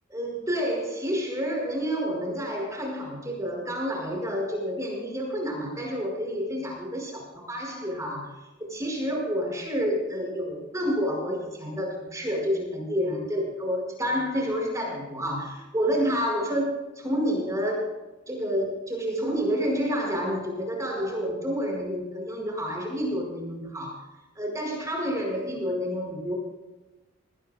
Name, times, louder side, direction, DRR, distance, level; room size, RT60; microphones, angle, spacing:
voice 1, 0.1-8.3 8.7-17.9 18.3-24.0 24.4-26.4, equal, 15° right, -1 dB, 5.4 m, -29 dB
20.5 x 18.5 x 2.3 m, 1.1 s
head